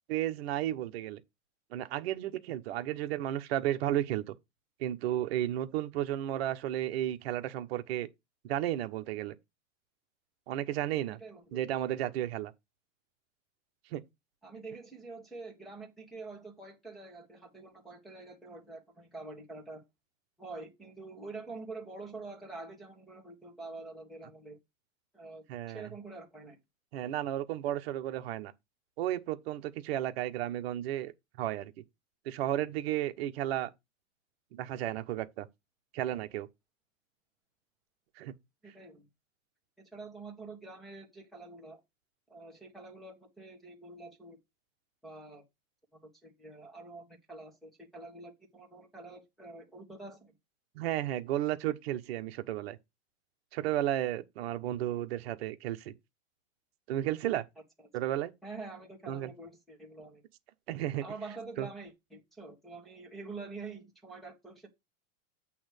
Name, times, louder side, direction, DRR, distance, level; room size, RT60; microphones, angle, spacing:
voice 1, 0.1-1.2 1.7-4.4 4.8-8.1 8.4-9.3 10.5-11.2 11.5-12.5 13.9-14.0 25.5-25.9 26.9-28.5 29.0-31.1 31.4-31.8 32.2-33.7 34.5-35.5 35.9-36.5 38.2-38.3 50.7-52.8 53.5-55.9 56.9-57.4 57.9-58.3 59.1-59.3 60.7-61.0 61.6-61.7, right 13 dB, 50° right, 1.2 m, -33 dB
voice 2, 11.2-11.6 14.4-19.8 20.4-24.6 25.1-26.6 38.6-39.1 39.8-41.8 42.3-44.4 45.0-45.4 46.0-50.3 58.4-60.2 61.0-64.7, right 3 dB, ahead, 1.7 m, -46 dB
8.7 x 3.3 x 6.6 m
supercardioid pair, 170°, 40 cm